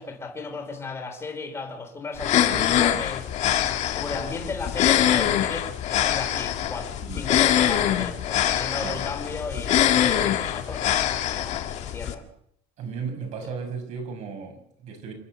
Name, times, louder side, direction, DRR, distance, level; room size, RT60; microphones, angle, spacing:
voice 1, 0.0-3.3 3.9-12.3, left 3 dB, 20° left, 4 dB, 3.6 m, -35 dB
sound 1, 2.2-12.1, left 11 dB, 55° left, 1.9 m, -24 dB
voice 2, 4.9-5.4 7.0-7.3 8.8-9.0 12.8-15.1, right 5 dB, 55° right, 4 dB, 6.7 m, -36 dB
27.0 x 12.5 x 8.1 m, 0.69 s
cardioid pair, 175°, 14 cm